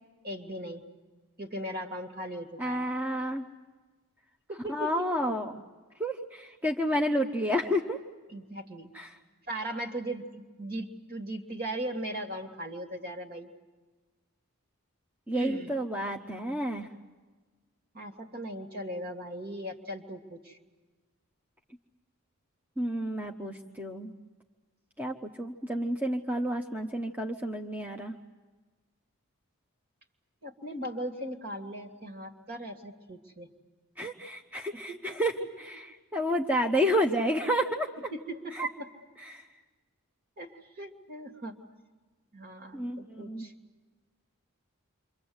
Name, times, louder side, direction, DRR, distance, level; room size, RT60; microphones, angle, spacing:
voice 1, 0.2-0.8 1.4-2.9 4.5-5.2 8.3-8.9 9.5-13.5 15.3-15.7 17.9-20.6 30.4-33.5 34.9-35.2 38.1-38.9 40.4-41.6 42.3-43.5, right 1 dB, 45° right, 3 dB, 2.7 m, -38 dB
voice 2, 2.6-3.4 4.7-5.5 6.0-8.0 8.9-9.1 15.3-16.9 22.8-24.1 25.0-28.2 34.0-35.9 36.1-37.9 38.5-38.7 39.3-39.5 42.7-43.5, equal, 5° right, 2 dB, 1.0 m, -30 dB
28.5 x 25.0 x 8.1 m, 1.3 s
head